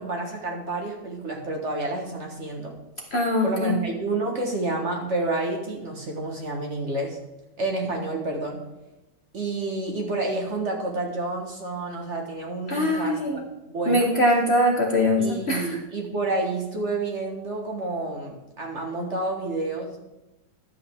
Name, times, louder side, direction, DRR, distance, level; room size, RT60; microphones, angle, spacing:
voice 1, 0.0-2.7 3.4-7.2 7.6-8.6 9.3-13.4 13.7-14.1 15.2-20.0, right 2 dB, 40° right, 1 dB, 1.6 m, -29 dB
voice 2, 3.1-3.8 12.7-13.4 13.9-15.8, left 1 dB, 40° left, 0 dB, 1.1 m, -22 dB
11.5 x 7.8 x 3.5 m, 0.98 s
omnidirectional pair, 1.9 m